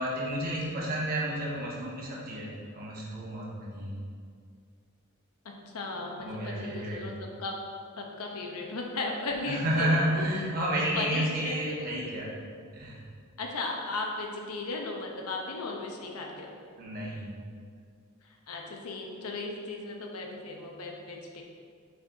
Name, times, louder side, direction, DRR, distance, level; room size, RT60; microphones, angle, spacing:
voice 1, 0.0-3.9 6.2-7.0 9.5-12.3 12.8-13.0 16.8-17.3, right 1 dB, 40° right, -4 dB, 1.3 m, -31 dB
voice 2, 5.4-7.1 7.4-7.5 8.0-10.3 10.9-11.8 13.4-16.5 18.5-21.4, left 3 dB, 85° left, 1 dB, 0.8 m, -36 dB
6.6 x 5.8 x 2.7 m, 2.1 s
head